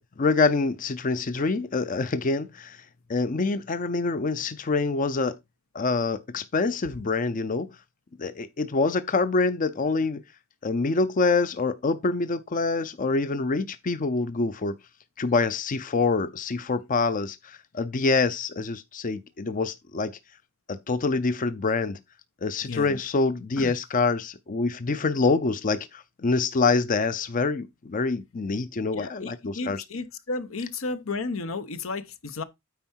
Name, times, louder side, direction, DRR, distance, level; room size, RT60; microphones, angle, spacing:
voice 1, 0.0-2.8 3.1-5.4 5.7-7.7 8.2-10.2 10.6-14.7 15.2-20.1 20.7-22.0 22.4-29.8, left 3 dB, 40° left, 0.5 m, -26 dB
voice 2, 22.7-23.0 23.6-23.8 28.9-32.4, left 3 dB, 80° left, 0.9 m, -33 dB
9.2 x 4.6 x 4.4 m
head